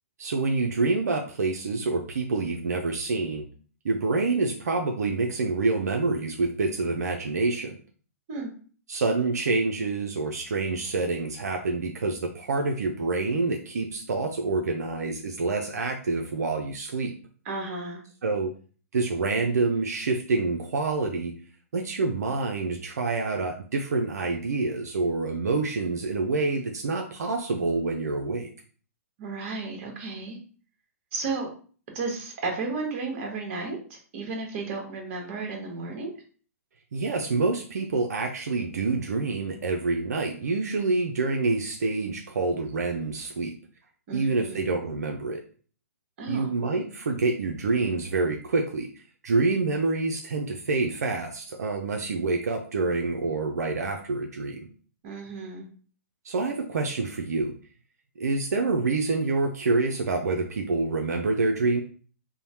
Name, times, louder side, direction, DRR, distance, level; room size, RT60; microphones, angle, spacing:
voice 1, 0.2-3.5 3.8-7.8 8.9-17.1 18.2-18.5 18.9-21.4 21.7-28.5 36.9-43.5 44.1-45.4 46.3-48.9 49.2-54.7 56.2-57.5 58.2-61.8, right 3 dB, 85° right, 3 dB, 0.4 m, -27 dB
voice 2, 17.4-18.0 29.2-30.4 31.1-31.5 31.9-36.1 44.1-44.6 46.2-46.5 55.0-55.6, right 3 dB, 45° right, 1 dB, 1.0 m, -33 dB
3.1 x 2.0 x 2.7 m, 0.41 s
hypercardioid pair, 135°, 9 cm